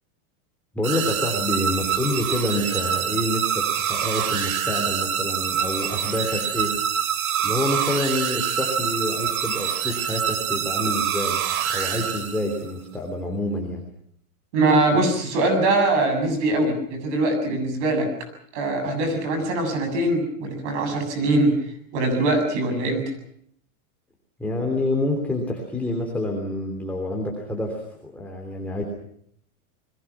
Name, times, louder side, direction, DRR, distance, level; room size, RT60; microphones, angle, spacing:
voice 1, 0.7-6.8 7.4-11.4 11.7-13.8 24.4-28.8, left 1 dB, 5° left, 0 dB, 3.2 m, -27 dB
sound 1, 0.8-12.7, right 8 dB, 75° right, 2.8 m, -26 dB
voice 2, 14.5-18.1 18.5-21.5 21.9-23.1, right 2 dB, 55° right, 7 dB, 7.7 m, -22 dB
29.5 x 21.5 x 6.0 m, 0.67 s
supercardioid pair, 165°, 43 cm